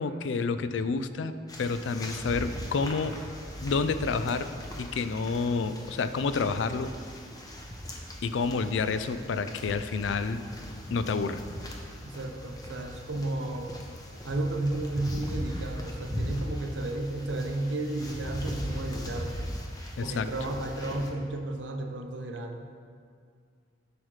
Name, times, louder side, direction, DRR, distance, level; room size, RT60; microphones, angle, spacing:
voice 1, 0.0-1.3 1.6-3.1 3.6-4.5 4.8-6.9 8.2-10.4 10.9-11.4 20.0-20.3, left 4 dB, 75° left, 11 dB, 0.4 m, -29 dB
sound 1, 1.5-21.1, equal, 20° left, 0.8 m, -39 dB
voice 2, 12.0-13.7 14.2-19.5 20.0-22.6, right 2 dB, 70° right, 4 dB, 0.7 m, -33 dB
11.0 x 4.8 x 3.2 m, 2.2 s
head